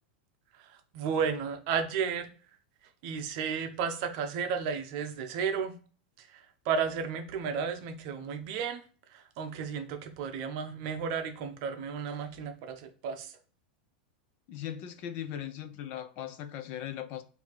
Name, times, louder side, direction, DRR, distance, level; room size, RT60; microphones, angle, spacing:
voice 1, 0.6-2.3 3.0-5.8 6.2-8.8 9.1-13.3, right 6 dB, 40° right, 0.7 m, -33 dB
voice 2, 14.5-17.2, left 10 dB, 35° left, 0.5 m, -39 dB
4.2 x 2.8 x 4.5 m
supercardioid pair, 170°, 5 cm